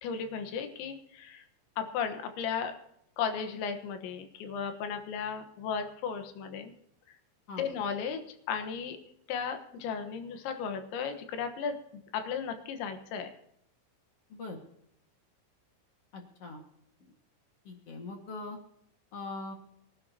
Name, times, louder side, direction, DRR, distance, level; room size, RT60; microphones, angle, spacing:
voice 1, 0.0-1.5 1.8-2.7 3.2-6.7 7.6-8.2 8.5-9.0 9.3-13.3, left 6 dB, 80° left, 7 dB, 3.6 m, -35 dB
voice 2, 14.3-14.6 16.1-16.6 17.6-18.6 19.1-19.5, left 3 dB, 50° left, 2 dB, 2.0 m, -41 dB
24.0 x 12.0 x 2.9 m, 0.76 s
omnidirectional pair, 5.2 m